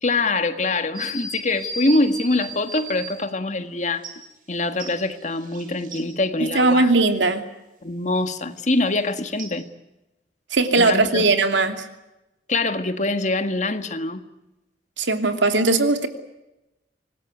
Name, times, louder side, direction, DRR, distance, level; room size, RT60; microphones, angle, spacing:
voice 1, 0.0-4.0 4.5-6.9 7.8-9.7 10.8-11.3 12.5-14.2, left 2 dB, 40° left, 9 dB, 1.7 m, -24 dB
sound 1, 0.9-3.2 4.0-4.1 4.8-6.0 9.4-9.5, right 2 dB, 50° right, 5.7 m, -35 dB
voice 2, 6.4-7.4 10.5-11.9 15.0-16.1, right 3 dB, 90° right, 7 dB, 2.8 m, -19 dB
25.5 x 20.0 x 9.4 m, 0.98 s
head